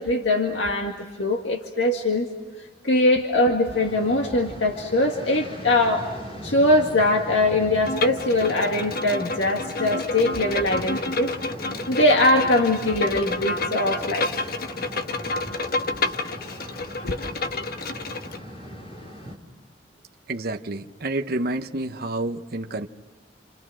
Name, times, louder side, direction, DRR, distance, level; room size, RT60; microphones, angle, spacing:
voice 1, 0.0-2.3 2.8-6.1 6.4-11.3 11.9-14.3 17.0-17.2, left 1 dB, 85° left, 1 dB, 2.1 m, -22 dB
sound 1, 3.7-19.4, equal, 35° left, 4.1 m, -39 dB
Bowed string instrument, 7.8-18.4, left 3 dB, 55° left, 1.2 m, -29 dB
voice 2, 20.3-22.9, right 2 dB, 55° right, 5 dB, 0.9 m, -29 dB
29.0 x 29.0 x 6.3 m, 1.5 s
head